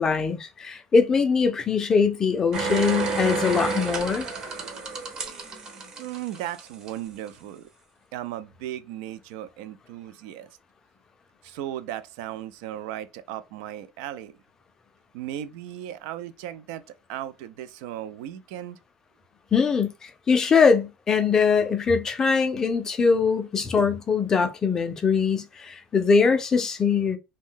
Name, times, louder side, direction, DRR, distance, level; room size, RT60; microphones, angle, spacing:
voice 1, 0.0-4.3 19.5-27.2, left 5 dB, 20° left, 0.4 m, -22 dB
sound 1, 2.5-6.9 7.3-7.4, right 4 dB, 25° right, 0.6 m, -30 dB
voice 2, 6.0-7.7 8.1-10.5 11.4-14.3 15.1-16.8 17.1-18.8, right 12 dB, 65° right, 0.3 m, -36 dB
2.6 x 2.1 x 3.6 m
cardioid pair, 160°, 3 cm